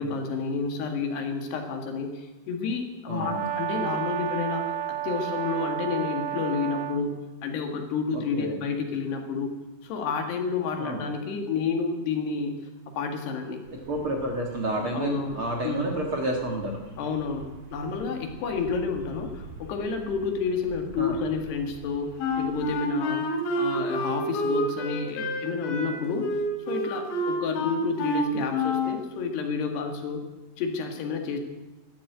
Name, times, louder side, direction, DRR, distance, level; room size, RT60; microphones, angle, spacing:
voice 1, 0.0-9.5 9.8-12.6 13.0-13.6 14.9-16.0 17.0-23.3 23.6-26.3 26.7-30.3 30.6-31.4, left 5 dB, 90° left, 4 dB, 4.1 m, -30 dB
voice 2, 3.1-3.5 8.1-8.6 10.8-11.0 13.9-16.8 21.0-21.2, right 1 dB, 45° right, 1 dB, 1.9 m, -30 dB
Brass instrument, 3.2-7.1, right 12 dB, 90° right, 1.5 m, -31 dB
Bird vocalization bird call bird song, 13.6-22.6, right 2 dB, 70° right, 7.7 m, -47 dB
Wind instrument woodwind instrument, 22.2-29.0, left 1 dB, 70° left, 4.0 m, -28 dB
13.5 x 12.0 x 9.1 m, 1.1 s
omnidirectional pair, 4.6 m